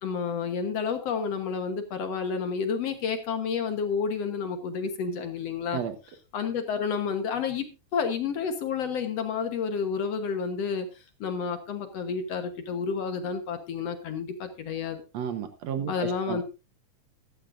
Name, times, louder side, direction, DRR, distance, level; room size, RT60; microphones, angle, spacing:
voice 1, 0.0-5.8 6.3-15.0 15.9-16.4, left 6 dB, 60° left, 7 dB, 2.1 m, -30 dB
voice 2, 15.1-16.4, right 8 dB, 65° right, 8 dB, 2.1 m, -32 dB
14.5 x 13.0 x 2.6 m, 0.29 s
omnidirectional pair, 3.6 m